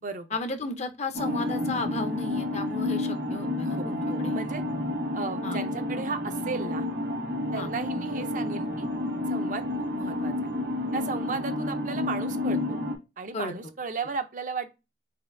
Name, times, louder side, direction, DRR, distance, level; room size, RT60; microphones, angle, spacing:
voice 1, 0.3-4.4 5.4-5.6 7.6-7.7 13.3-13.7, left 3 dB, 35° left, 0.6 m, -34 dB
sound 1, 1.1-13.0, left 1 dB, 75° right, 1.5 m, -30 dB
voice 2, 3.6-4.6 5.1-6.9 7.5-8.9 9.3-10.5 10.9-12.8 13.2-14.7, right 4 dB, 45° right, 0.5 m, -35 dB
4.2 x 3.9 x 2.5 m
head